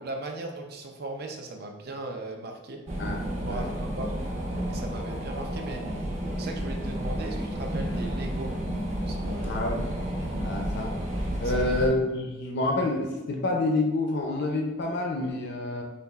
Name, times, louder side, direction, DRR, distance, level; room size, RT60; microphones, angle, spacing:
voice 1, 0.0-2.8 3.4-4.1 4.7-5.8 6.4-8.5 9.0-9.6 11.4-11.6, right 2 dB, 55° right, 3 dB, 0.5 m, -38 dB
sound 1, 2.9-11.9, equal, 40° right, 0.9 m, -31 dB
voice 2, 3.0-3.7 9.4-9.8 10.4-10.9 11.4-15.8, left 2 dB, 60° left, 1 dB, 0.5 m, -28 dB
6.5 x 2.4 x 2.4 m, 1.2 s
head